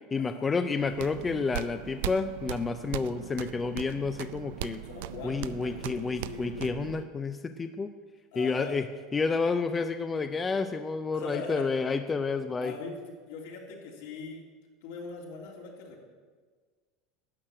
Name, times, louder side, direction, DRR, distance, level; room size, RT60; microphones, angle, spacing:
voice 1, 0.1-4.8 5.2-7.9 8.4-8.9 9.1-12.7, left 4 dB, 15° left, 9 dB, 0.4 m, -30 dB
sound 1, 0.8-7.0, right 12 dB, 80° right, 0.4 m, -39 dB
voice 2, 4.8-6.7 8.3-8.8 11.1-11.7 12.6-14.4 14.8-16.0, left 4 dB, 75° left, -1 dB, 3.1 m, -41 dB
12.0 x 6.5 x 8.8 m, 1.5 s
supercardioid pair, 160°, 0 cm